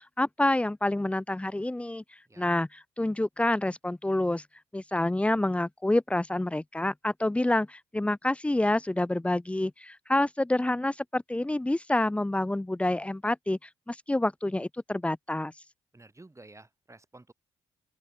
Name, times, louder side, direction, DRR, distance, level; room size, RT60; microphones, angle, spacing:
voice 1, 0.0-2.0 2.4-4.4 4.7-15.5, left 1 dB, 10° left, 0.5 m, -28 dB
voice 2, 15.9-17.3, right 2 dB, 20° right, 5.4 m, -52 dB
open air
hypercardioid pair, 50°, 15 cm